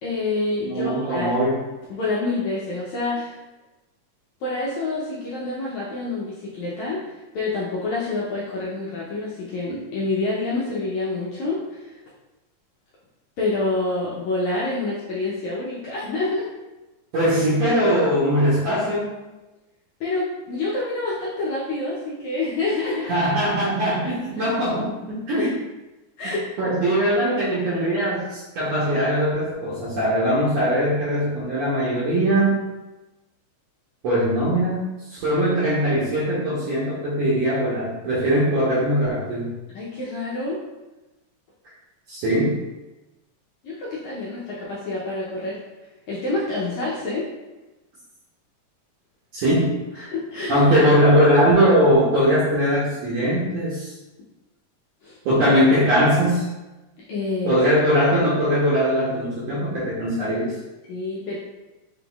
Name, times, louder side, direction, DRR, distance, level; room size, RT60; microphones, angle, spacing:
voice 1, 0.0-1.3 1.9-3.4 4.4-11.9 13.4-16.5 20.0-23.2 24.4-24.5 25.4-25.5 26.2-26.5 39.7-40.6 43.6-45.6 46.1-47.3 50.1-50.5 55.0-55.2 57.1-57.6 60.9-61.4, left 2 dB, 75° left, -6 dB, 1.7 m, -27 dB
voice 2, 0.6-1.7 17.1-19.1 23.1-25.5 26.6-32.6 34.0-34.8 35.1-39.5 42.1-42.6 49.3-50.1 50.5-53.9 55.2-56.5 57.4-60.5, equal, 65° right, -8 dB, 1.7 m, -20 dB
6.0 x 3.5 x 2.3 m, 1.1 s
omnidirectional pair, 4.0 m